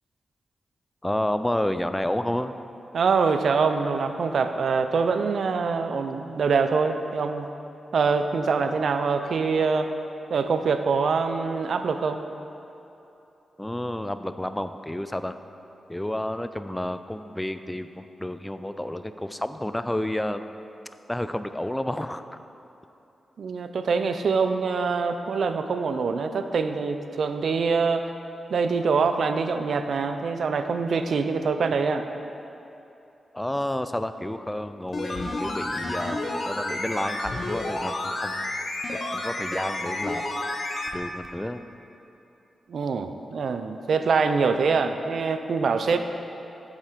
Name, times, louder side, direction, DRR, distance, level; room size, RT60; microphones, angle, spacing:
voice 1, 1.0-2.5 13.6-15.4 15.9-20.4 21.1-22.2 33.3-38.6 38.9-40.3 40.9-41.6, left 1 dB, 10° left, 10 dB, 0.4 m, -30 dB
voice 2, 2.9-7.5 7.9-9.9 10.3-12.2 23.4-28.1 28.5-32.1 42.7-46.0, right 5 dB, 75° right, 8 dB, 0.5 m, -24 dB
sound 1, 34.9-41.0 41.2-41.3, left 2 dB, 55° left, 1.0 m, -30 dB
7.5 x 7.3 x 5.1 m, 2.9 s
cardioid pair, 65°, 0 cm